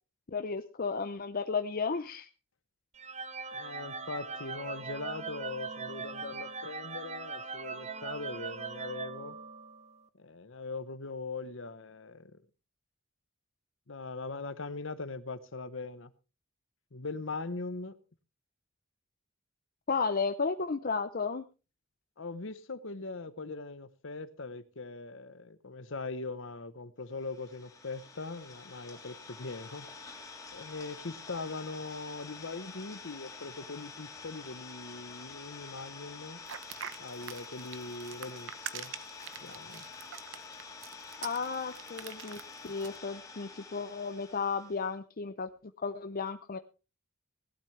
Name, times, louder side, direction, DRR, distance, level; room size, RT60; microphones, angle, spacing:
voice 1, 0.3-2.3 19.9-21.4 41.2-42.4 42.6-45.5 45.8-46.6, left 5 dB, 45° left, 9 dB, 0.6 m, -33 dB
sound 1, 3.0-10.0, right 4 dB, 35° right, 0.8 m, -40 dB
voice 2, 3.5-9.4 10.2-12.4 13.9-16.1 16.9-18.0 22.2-29.9 30.5-36.4 37.0-38.9 39.4-39.9, left 3 dB, 65° left, 13 dB, 1.0 m, -41 dB
Idling, 27.2-44.9, left 4 dB, 15° left, 3.4 m, -48 dB
sound 2, 36.5-43.0, right 9 dB, 65° right, 1.0 m, -44 dB
18.0 x 12.0 x 3.3 m, 0.32 s
head